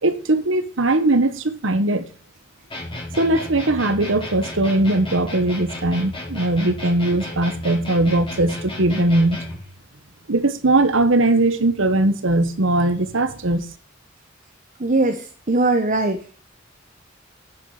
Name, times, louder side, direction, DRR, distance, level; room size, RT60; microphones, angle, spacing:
voice 1, 0.0-2.0 3.2-9.4 10.3-13.6, right 2 dB, 75° right, 1.3 m, -20 dB
sound 1, 2.7-9.7, left 1 dB, 25° left, 4.3 m, -33 dB
voice 2, 14.8-16.2, right 2 dB, 40° right, 1.0 m, -20 dB
9.9 x 9.2 x 4.9 m
head